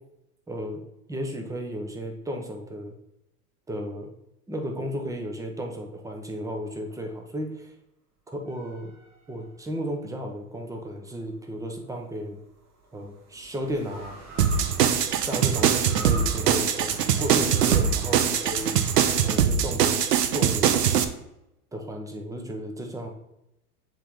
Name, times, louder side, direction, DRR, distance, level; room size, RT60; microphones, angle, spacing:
voice 1, 0.5-0.8 1.1-2.9 3.7-4.1 4.5-7.7 8.3-8.9 9.3-12.4 12.9-14.2 15.2-18.8 19.2-20.0 20.3-20.8 21.7-23.1, equal, 5° right, 3 dB, 1.0 m, -34 dB
sound 1, 8.5-10.0 11.8-19.4, right 2 dB, 35° right, 1.8 m, -44 dB
sound 2, 14.4-21.0, right 8 dB, 80° right, 0.8 m, -22 dB
7.4 x 3.7 x 3.8 m, 0.85 s
hypercardioid pair, 100°, 47 cm